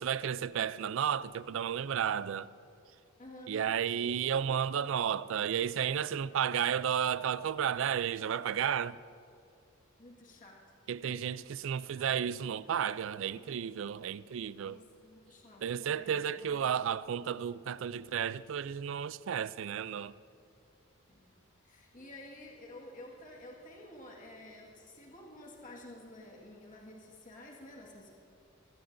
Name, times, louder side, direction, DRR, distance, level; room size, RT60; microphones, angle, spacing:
voice 1, 0.0-2.5 3.5-9.0 10.9-14.8 15.6-20.1, right 8 dB, 65° right, 0.3 m, -32 dB
voice 2, 3.2-3.8 10.0-10.6 11.0-11.4 11.9-12.1 14.6-16.6 21.1-21.3 21.6-28.1, left 1 dB, 40° left, 1.7 m, -51 dB
23.0 x 17.5 x 2.6 m
head